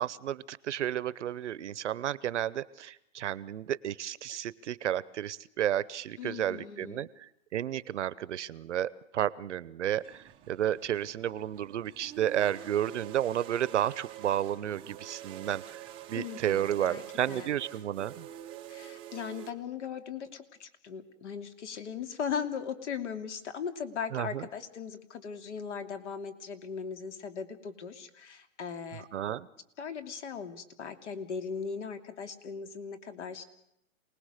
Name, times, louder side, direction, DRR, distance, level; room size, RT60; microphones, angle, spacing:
voice 1, 0.0-15.8 16.1-18.2 24.1-24.4 29.1-29.5, right 11 dB, 55° right, 19 dB, 1.0 m, -32 dB
voice 2, 6.2-7.1 16.1-17.5 18.7-29.1 29.8-33.4, left 6 dB, 55° left, 8 dB, 2.9 m, -38 dB
sound 1, 10.0-19.5, right 13 dB, 10° right, 0.8 m, -47 dB
27.5 x 19.5 x 6.6 m, 0.79 s
hypercardioid pair, 155°, 42 cm